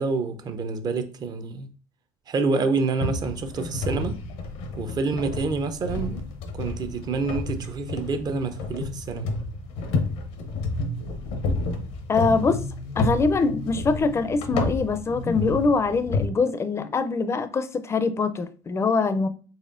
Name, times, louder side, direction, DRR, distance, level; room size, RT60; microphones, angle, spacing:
voice 1, 0.0-1.7 2.3-4.2 4.8-6.3 6.5-9.3, right 4 dB, 40° right, 0.6 m, -27 dB
sound 1, 3.0-16.3, left 2 dB, 80° left, 0.7 m, -30 dB
voice 2, 12.1-12.6 13.0-19.3, left 4 dB, 25° left, 0.4 m, -23 dB
4.2 x 3.1 x 2.5 m
supercardioid pair, 100°, 11 cm